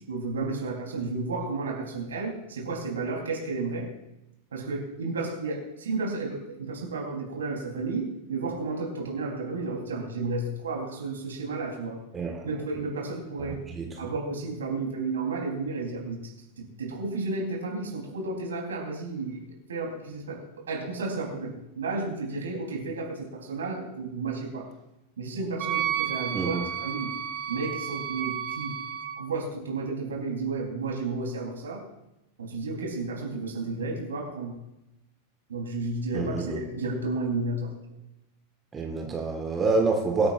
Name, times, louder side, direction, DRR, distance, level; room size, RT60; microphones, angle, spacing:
voice 1, 0.1-3.9 4.5-12.0 12.4-13.6 14.0-24.7 25.2-27.1 27.5-28.8 29.2-31.8 32.4-34.6 35.5-37.7, right 3 dB, 65° right, 0 dB, 3.6 m, -32 dB
Wind instrument woodwind instrument, 25.6-29.2, right 10 dB, 35° right, 1.0 m, -32 dB
voice 2, 36.1-36.6 38.7-40.3, right 3 dB, 20° right, 1 dB, 1.6 m, -27 dB
24.0 x 8.8 x 2.5 m, 0.91 s
figure-of-eight pair, 90°, 0 cm